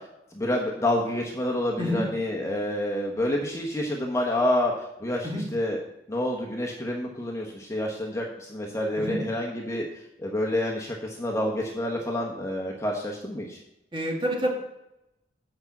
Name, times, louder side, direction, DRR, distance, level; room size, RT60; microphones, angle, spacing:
voice 1, 0.3-4.7 5.0-5.8 6.1-9.9 10.2-13.6, left 1 dB, 15° left, -1 dB, 1.0 m, -28 dB
voice 2, 13.9-14.5, equal, 25° right, -1 dB, 2.0 m, -28 dB
6.3 x 5.9 x 7.2 m, 0.86 s
head